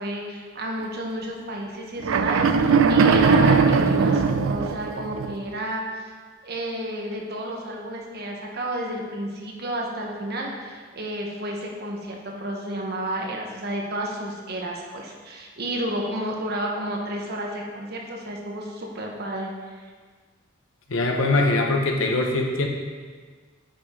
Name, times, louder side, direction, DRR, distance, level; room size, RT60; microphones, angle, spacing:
voice 1, 0.0-6.0 6.4-19.7, right 1 dB, 55° right, 0 dB, 1.1 m, -31 dB
sound 1, 2.0-5.3, right 5 dB, 85° right, 0.4 m, -19 dB
voice 2, 20.9-22.7, left 2 dB, 85° left, 2 dB, 1.0 m, -22 dB
8.7 x 5.0 x 3.7 m, 1.5 s
head